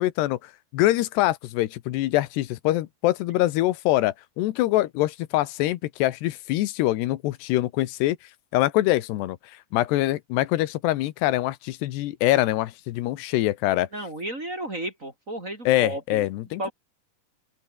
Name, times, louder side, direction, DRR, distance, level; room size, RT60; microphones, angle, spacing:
voice 1, 0.0-8.2 8.5-9.4 9.7-13.9 15.7-16.7, left 16 dB, 90° left, 3.2 m, -24 dB
voice 2, 13.9-16.3 16.6-16.7, right 1 dB, 20° right, 3.2 m, -33 dB
open air
omnidirectional pair, 4.7 m